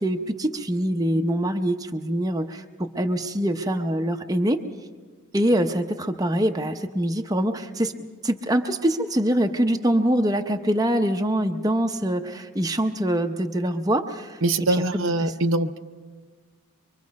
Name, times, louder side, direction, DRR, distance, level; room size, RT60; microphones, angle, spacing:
voice 1, 0.0-4.6 5.3-7.9 8.2-14.4 14.9-15.3, right 1 dB, 15° right, 5 dB, 0.7 m, -24 dB
voice 2, 14.4-15.8, right 2 dB, 60° right, 8 dB, 0.7 m, -23 dB
24.5 x 24.0 x 5.3 m, 1.4 s
head